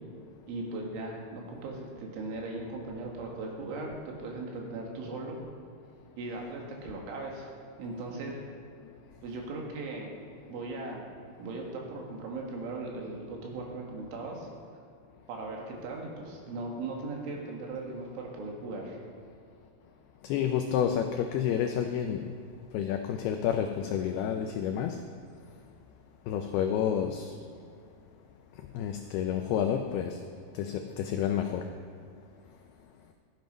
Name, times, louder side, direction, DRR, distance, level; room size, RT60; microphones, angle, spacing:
voice 1, 0.5-5.4 6.2-7.5 7.8-8.4 9.2-10.1 10.5-11.1 11.4-14.5 15.3-19.0, right 2 dB, 85° right, -1 dB, 4.3 m, -38 dB
voice 2, 20.2-22.3 22.7-25.0 26.3-27.3 28.7-30.2 30.5-31.6, left 9 dB, 90° left, 5 dB, 2.2 m, -29 dB
14.0 x 9.3 x 5.2 m, 2.4 s
omnidirectional pair, 5.3 m